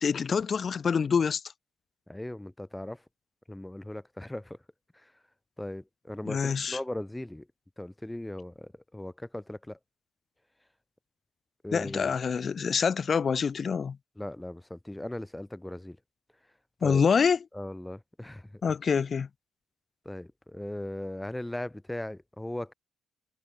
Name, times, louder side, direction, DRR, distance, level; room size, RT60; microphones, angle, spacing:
voice 1, 0.0-1.4 6.2-6.8 11.7-14.0 16.8-17.4 18.6-19.3, left 6 dB, 45° left, 1.5 m, -26 dB
voice 2, 2.1-3.0 3.5-4.6 4.9-5.1 5.6-7.5 7.8-9.8 11.6-12.1 14.2-16.0 16.8-17.0 17.5-18.6 20.0-22.7, left 1 dB, 10° left, 7.4 m, -38 dB
cardioid pair, 90°, 0 cm